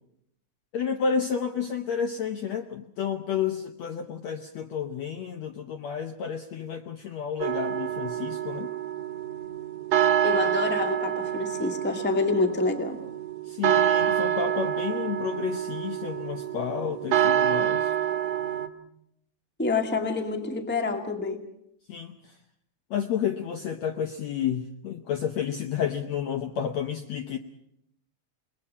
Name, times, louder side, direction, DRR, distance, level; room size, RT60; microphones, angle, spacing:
voice 1, 0.7-8.7 13.4-17.9 21.9-22.4 22.9-27.4, left 7 dB, 65° left, 8 dB, 1.8 m, -31 dB
sound 1, 7.4-18.7, right 10 dB, 60° right, 2.0 m, -27 dB
voice 2, 10.2-13.0 19.6-21.4, left 3 dB, 5° left, 6 dB, 1.2 m, -27 dB
29.0 x 20.5 x 5.5 m, 0.73 s
omnidirectional pair, 4.2 m